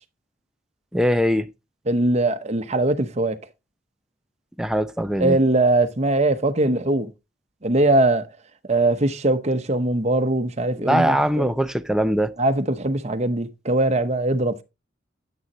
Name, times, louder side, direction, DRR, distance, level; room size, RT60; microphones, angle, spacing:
voice 1, 0.9-1.5 4.6-5.4 10.7-12.3, equal, 5° right, 0.4 m, -21 dB
voice 2, 1.9-3.4 5.2-7.1 7.6-8.3 8.7-11.5 12.4-14.6, right 2 dB, 35° right, 0.8 m, -21 dB
9.4 x 8.5 x 2.9 m
head